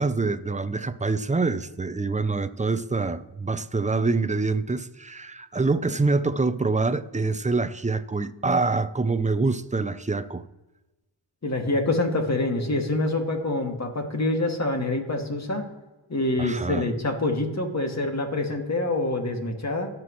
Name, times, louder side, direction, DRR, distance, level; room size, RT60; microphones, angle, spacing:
voice 1, 0.0-10.4 16.4-16.9, right 3 dB, 15° right, 0.7 m, -25 dB
voice 2, 11.4-15.6 16.1-19.9, left 2 dB, 35° left, 2.3 m, -26 dB
18.0 x 6.1 x 3.2 m
cardioid pair, 50°, 47 cm